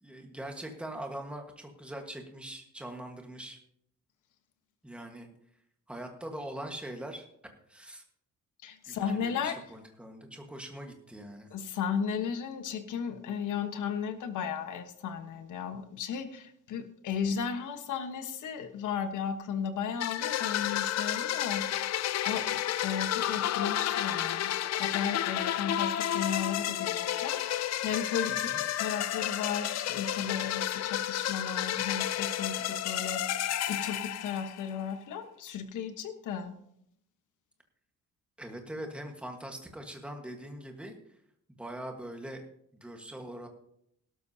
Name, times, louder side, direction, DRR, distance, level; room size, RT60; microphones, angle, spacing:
voice 1, 0.0-3.6 4.8-5.3 5.9-7.3 7.7-8.0 8.9-11.5 28.3-28.6 38.4-40.9 41.5-42.4 42.7-43.5, right 1 dB, 5° right, 3 dB, 1.4 m, -42 dB
voice 2, 8.6-9.6 11.5-21.7 22.2-36.5, left 7 dB, 75° left, 8 dB, 1.3 m, -35 dB
sound 1, 20.0-34.8, left 12 dB, 55° left, 0.6 m, -31 dB
17.5 x 12.5 x 2.8 m, 0.73 s
cardioid pair, 180°, 31 cm